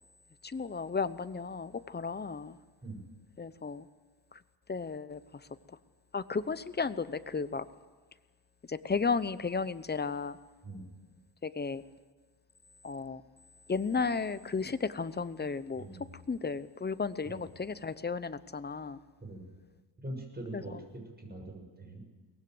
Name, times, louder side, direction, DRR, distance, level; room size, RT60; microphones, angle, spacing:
voice 1, 0.4-2.6 3.4-3.9 4.3-4.4 4.7-5.2 6.1-7.7 8.7-10.4 11.4-11.8 12.8-13.2 13.7-15.9 16.3-19.0 20.5-20.8, left 4 dB, 25° left, 14 dB, 0.8 m, -34 dB
voice 2, 15.7-16.2 17.2-17.5 19.2-19.5 20.0-22.0, right 1 dB, 20° right, 3 dB, 6.8 m, -43 dB
23.0 x 19.0 x 7.9 m, 1.4 s
cardioid pair, 110°, 43 cm